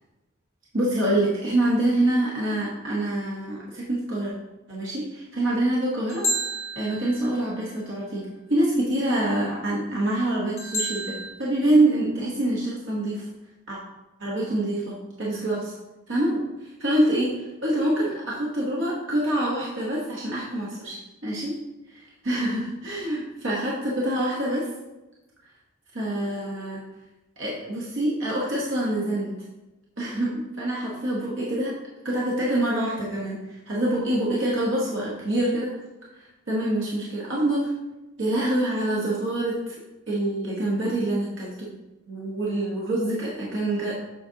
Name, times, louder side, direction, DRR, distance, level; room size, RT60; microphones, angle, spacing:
voice 1, 0.7-4.3 4.7-6.2 6.8-8.2 8.5-11.1 11.4-13.3 13.7-13.8 14.2-15.7 16.1-21.0 21.2-21.5 21.9-24.7 25.9-26.8 27.4-29.3 30.0-31.7 32.0-35.7 36.2-37.7 38.2-39.7 40.1-41.7 42.1-44.0, right 1 dB, 60° right, -5 dB, 1.2 m, -26 dB
sound 1, 6.1-7.4 10.6-11.3, equal, 30° left, 1.1 m, -29 dB
7.6 x 5.0 x 2.8 m, 1.0 s
head